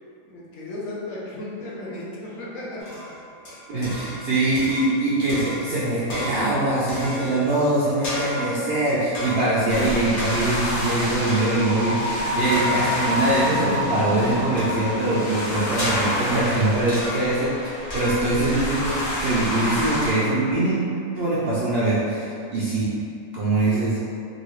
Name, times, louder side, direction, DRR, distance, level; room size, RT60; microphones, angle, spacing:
voice 1, 0.3-2.8 3.7-4.0, left 1 dB, 70° left, -7 dB, 1.2 m, -35 dB
sound 1, 2.8-4.3 4.6-5.0 5.3-7.6 8.0-8.7 9.1-9.7 10.2-10.8 11.3-11.9 12.5-13.2 14.6-15.1 15.8-16.5 16.9-17.5 17.9-18.5, left 1 dB, 55° left, 1.3 m, -32 dB
voice 2, 3.7-20.8 21.1-22.9 23.3-24.0, right 2 dB, 60° right, -9 dB, 0.6 m, -23 dB
sound 2, 9.7-20.1, equal, 90° left, 1.6 m, -30 dB
sound 3, 11.5-15.5, equal, 85° right, 1.2 m, -27 dB
3.7 x 2.3 x 3.0 m, 2.5 s
omnidirectional pair, 1.5 m